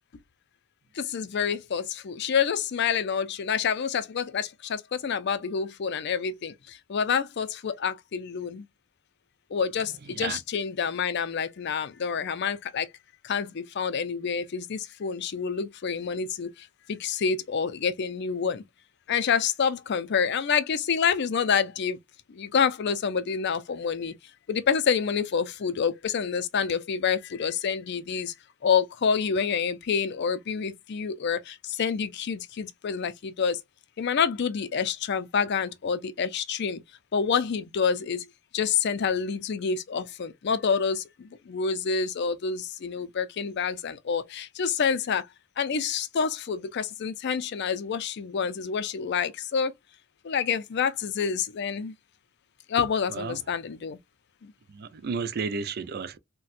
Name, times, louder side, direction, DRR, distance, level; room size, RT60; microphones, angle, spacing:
voice 1, 0.9-8.7 9.5-12.9 13.2-18.6 19.1-22.0 22.3-24.1 24.5-28.3 28.6-33.6 34.0-36.8 37.1-38.3 38.5-45.3 45.6-49.7 50.2-51.9 52.7-54.0 54.4-54.5, left 6 dB, 55° left, 0.4 m, -28 dB
voice 2, 10.1-10.4 53.1-53.4 54.7-56.2, right 5 dB, 50° right, 0.4 m, -32 dB
4.1 x 2.2 x 2.4 m
head